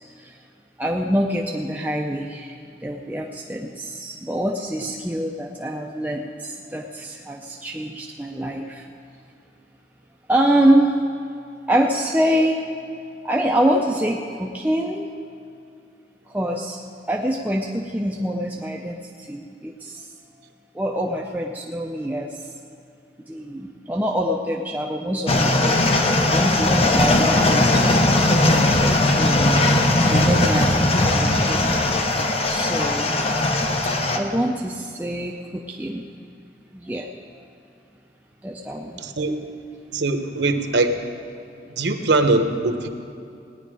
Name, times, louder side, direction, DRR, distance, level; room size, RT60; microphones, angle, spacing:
voice 1, 0.8-2.6 2.8-8.9 10.3-10.9 11.7-12.6 13.2-15.1 16.3-16.8 17.1-20.0 20.7-22.4 23.3-25.8 26.3-28.3 29.1-29.6 30.0-31.6 32.5-33.3 34.1-36.1 36.7-37.1 38.4-39.0, right 1 dB, 10° right, 0 dB, 0.6 m, -25 dB
sound 1, 25.3-34.2, left 2 dB, 35° left, 0.9 m, -19 dB
voice 2, 39.0-39.4 39.9-41.0 41.8-42.9, right 2 dB, 80° right, 7 dB, 1.0 m, -21 dB
18.0 x 10.0 x 4.9 m, 2.6 s
head